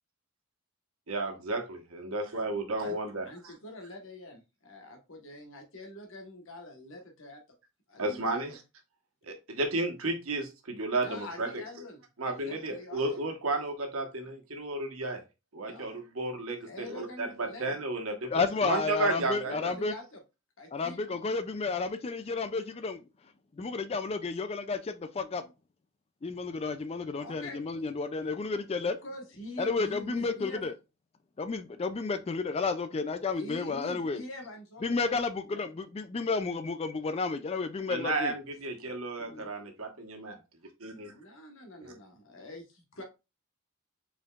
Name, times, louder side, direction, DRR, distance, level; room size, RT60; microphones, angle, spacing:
voice 1, 1.1-3.2 8.0-8.6 9.3-11.6 12.2-15.2 15.5-18.3 18.6-19.7 37.9-40.4 40.8-41.1 41.8-41.9, right 2 dB, 80° right, 1.3 m, -33 dB
voice 2, 3.2-7.4 7.9-8.4 10.9-13.0 15.6-16.0 16.6-17.6 19.4-20.2 20.6-21.0 27.1-27.6 28.8-30.6 33.3-35.2 35.5-35.6 41.1-43.0, left 1 dB, 65° left, 1.3 m, -45 dB
voice 3, 18.3-19.9 20.7-23.0 23.6-25.5 26.2-29.0 29.6-30.7 31.4-34.2 34.8-38.3 39.3-39.5, left 4 dB, 30° left, 0.4 m, -32 dB
4.7 x 4.5 x 2.4 m
head